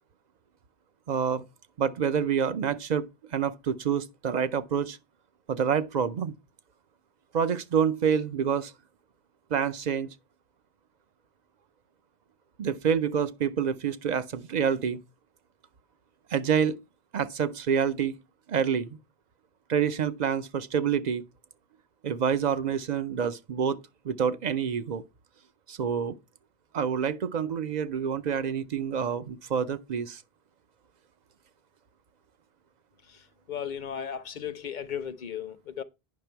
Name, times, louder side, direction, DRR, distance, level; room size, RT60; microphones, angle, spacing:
voice 1, 1.1-1.4 1.8-3.1 3.3-5.0 5.5-6.3 7.3-8.7 9.5-10.1 12.6-15.0 16.3-16.8 17.1-18.1 18.5-19.0 19.7-21.2 22.0-23.8 24.0-25.0 25.7-26.2 26.7-30.2, right 7 dB, 50° right, 0.6 m, -27 dB
voice 2, 33.1-35.8, left 8 dB, 55° left, 0.7 m, -36 dB
9.6 x 5.8 x 4.5 m
omnidirectional pair, 1.1 m